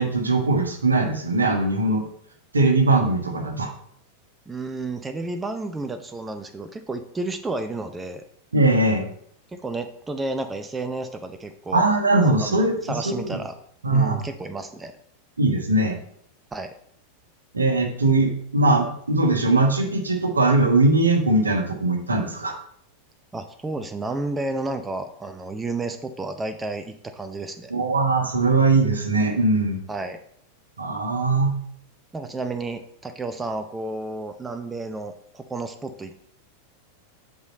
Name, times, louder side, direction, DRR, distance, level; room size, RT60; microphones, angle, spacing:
voice 1, 0.0-2.1 2.5-3.7 8.5-9.1 11.7-13.4 13.8-14.2 15.4-16.0 17.5-22.5 27.7-29.8 30.8-31.5, right 2 dB, 75° right, 3 dB, 1.3 m, -20 dB
voice 2, 4.5-8.2 9.5-11.8 12.4-13.5 13.9-14.9 16.5-16.7 23.3-27.7 29.9-30.2 32.1-36.2, right 2 dB, 10° right, 8 dB, 0.6 m, -31 dB
8.2 x 5.0 x 4.2 m, 0.65 s
figure-of-eight pair, 90°, 0 cm